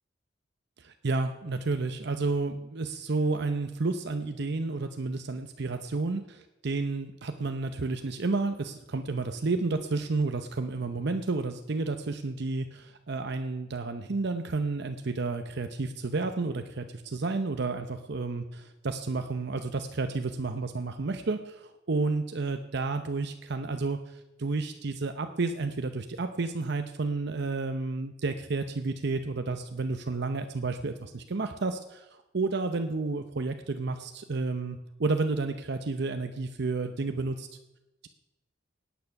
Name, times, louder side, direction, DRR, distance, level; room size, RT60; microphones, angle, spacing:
voice 1, 0.8-32.1 32.3-37.5, right 3 dB, 60° right, 7 dB, 0.7 m, -31 dB
17.5 x 9.2 x 5.8 m, 0.97 s
head